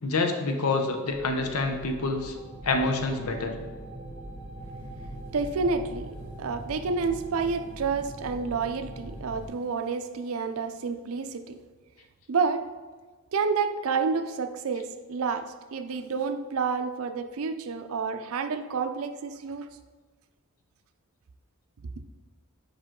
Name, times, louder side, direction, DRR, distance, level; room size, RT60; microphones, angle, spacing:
voice 1, 0.0-2.3 2.6-3.5, left 3 dB, 85° left, 4 dB, 0.7 m, -27 dB
sound 1, 1.1-9.5, right 1 dB, 25° left, 1.5 m, -41 dB
voice 2, 5.3-6.1 6.4-11.6 12.3-12.6 13.3-19.7, right 5 dB, 75° right, 9 dB, 0.4 m, -29 dB
5.1 x 4.9 x 3.7 m, 1.4 s
head